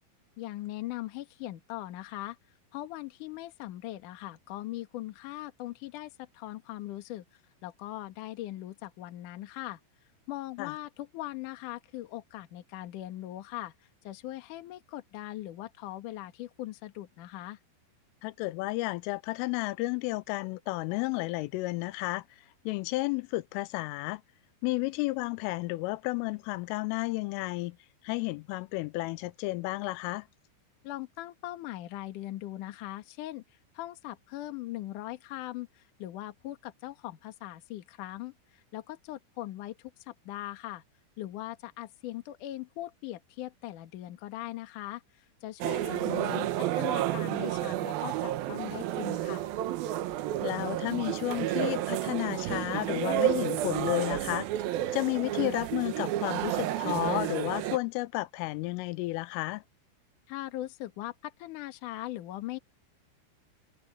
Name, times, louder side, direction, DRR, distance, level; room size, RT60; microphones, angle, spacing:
voice 1, 0.4-2.4 2.7-7.2 7.6-9.8 10.3-13.7 14.0-17.6 30.8-33.4 33.7-40.8 41.2-45.9 46.3-49.5 60.3-62.6, left 15 dB, 65° left, 2.2 m, -40 dB
voice 2, 18.2-22.2 22.7-24.2 24.6-27.8 28.0-30.3 45.9-46.4 50.4-54.5 54.9-59.6, left 21 dB, 90° left, 3.3 m, -32 dB
sound 1, 45.6-57.8, right 13 dB, 85° right, 2.1 m, -31 dB
omnidirectional pair, 5.7 m